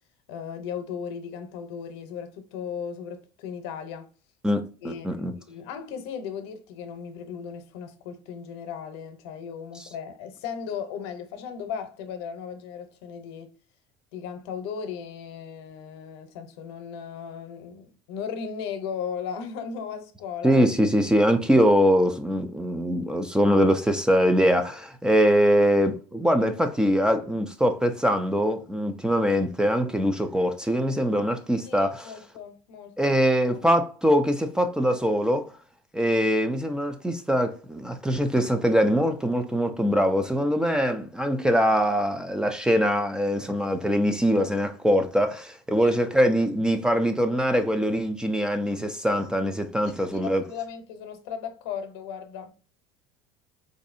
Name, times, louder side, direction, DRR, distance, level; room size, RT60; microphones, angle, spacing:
voice 1, 0.3-4.1 4.8-13.5 14.1-20.6 31.7-33.2 33.5-33.6 45.7-45.9 49.9-52.5, left 7 dB, 85° left, 0.8 m, -36 dB
voice 2, 4.4-5.3 20.4-32.1 33.0-35.5 35.9-50.4, equal, 5° right, 0.3 m, -23 dB
4.0 x 2.6 x 2.5 m
cardioid pair, 135°, 13 cm